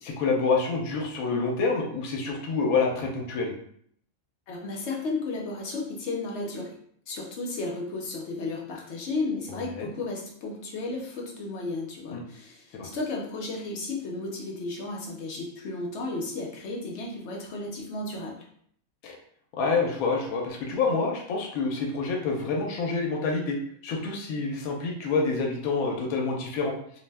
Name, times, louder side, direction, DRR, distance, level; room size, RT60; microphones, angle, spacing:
voice 1, 0.0-3.5 9.7-9.9 12.1-12.2 12.7-12.9 19.0-19.2 19.5-23.6 23.8-26.7, left 4 dB, 85° left, 0 dB, 1.1 m, -27 dB
voice 2, 4.5-6.8 7.1-18.4, left 3 dB, 60° left, -1 dB, 0.8 m, -33 dB
2.6 x 2.1 x 3.2 m, 0.64 s
omnidirectional pair, 1.5 m